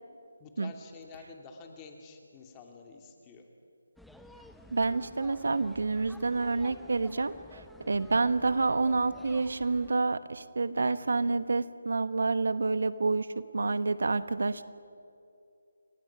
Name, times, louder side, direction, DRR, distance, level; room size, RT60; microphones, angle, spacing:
voice 1, 0.4-3.5, left 4 dB, 20° left, 3 dB, 2.8 m, -49 dB
sound 1, 4.0-9.9, left 1 dB, ahead, 0.8 m, -52 dB
voice 2, 4.7-14.6, right 3 dB, 70° right, 14 dB, 1.1 m, -28 dB
29.0 x 23.5 x 6.2 m, 2.5 s
figure-of-eight pair, 155°, 0 cm